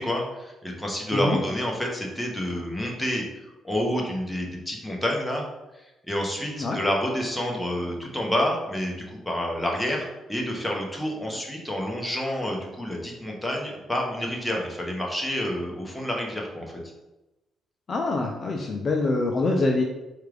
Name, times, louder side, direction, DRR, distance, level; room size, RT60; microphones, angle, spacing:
voice 1, 0.0-3.3 3.6-5.4 6.1-16.7, equal, 5° left, -1 dB, 0.9 m, -28 dB
voice 2, 17.9-19.8, left 2 dB, 40° left, 1 dB, 0.5 m, -25 dB
4.4 x 2.5 x 3.4 m, 1.0 s
cardioid pair, 90°, 0 cm